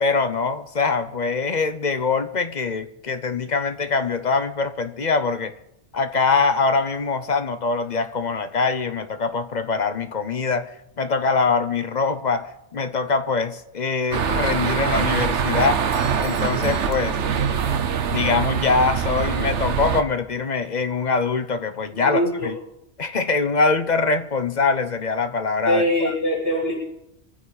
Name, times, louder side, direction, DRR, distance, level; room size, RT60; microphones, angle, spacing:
voice 1, 0.0-5.5 5.9-15.8 16.2-17.2 18.1-22.5 23.0-26.1, left 4 dB, 40° left, 10 dB, 0.9 m, -23 dB
sound 1, 14.1-20.0, right 7 dB, 75° right, 1.2 m, -23 dB
Doorbell, 15.9-17.9, right 1 dB, 60° right, 2.4 m, -46 dB
voice 2, 21.9-22.5 25.6-26.7, equal, 15° right, -6 dB, 6.4 m, -22 dB
26.0 x 9.8 x 4.1 m, 0.84 s
omnidirectional pair, 1.2 m